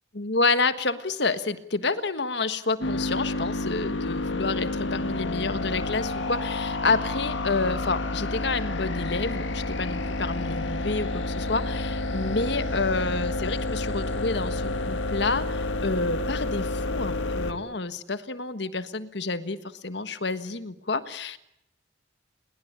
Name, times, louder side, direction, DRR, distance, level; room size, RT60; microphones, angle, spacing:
voice 1, 0.1-21.4, left 3 dB, 65° left, 12 dB, 1.5 m, -29 dB
sound 1, 2.8-17.5, left 2 dB, 80° left, 2.1 m, -29 dB
29.0 x 22.0 x 8.8 m, 0.79 s
head